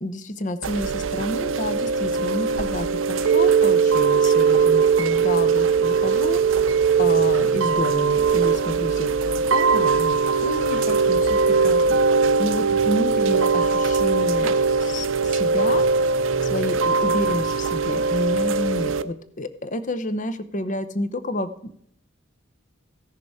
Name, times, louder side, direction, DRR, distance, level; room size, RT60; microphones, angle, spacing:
voice 1, 0.0-11.4 11.6-12.0 12.4-15.8 16.4-21.7, left 1 dB, 40° left, 12 dB, 0.8 m, -30 dB
Chime / Rain, 0.6-19.0, right 5 dB, 75° right, 0.6 m, -20 dB
15.5 x 6.7 x 4.8 m, 0.67 s
head